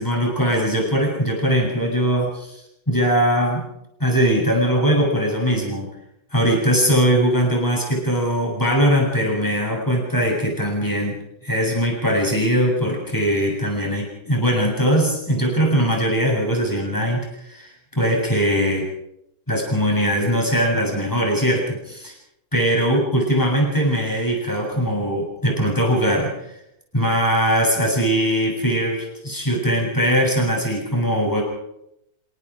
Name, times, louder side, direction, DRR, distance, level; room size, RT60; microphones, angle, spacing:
voice 1, 0.0-2.6 2.9-3.6 4.0-5.9 6.3-18.9 19.5-22.1 22.5-26.5 26.9-31.4, equal, 10° left, 0 dB, 7.9 m, -21 dB
29.5 x 17.5 x 5.1 m, 0.81 s
omnidirectional pair, 1.7 m